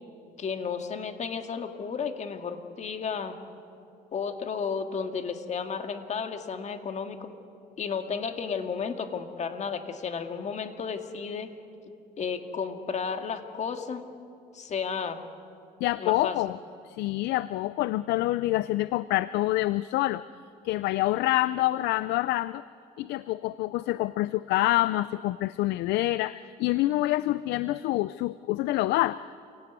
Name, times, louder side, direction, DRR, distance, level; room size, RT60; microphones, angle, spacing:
voice 1, 0.4-3.3 4.1-7.3 7.8-11.5 12.2-14.0 14.5-15.2 16.0-16.4, left 6 dB, 45° left, 7 dB, 2.1 m, -33 dB
voice 2, 15.8-16.6 16.8-20.2 20.6-22.6 23.0-29.3, left 16 dB, 85° left, 17 dB, 0.5 m, -27 dB
27.5 x 17.5 x 9.5 m, 2.6 s
cardioid pair, 110°, 17 cm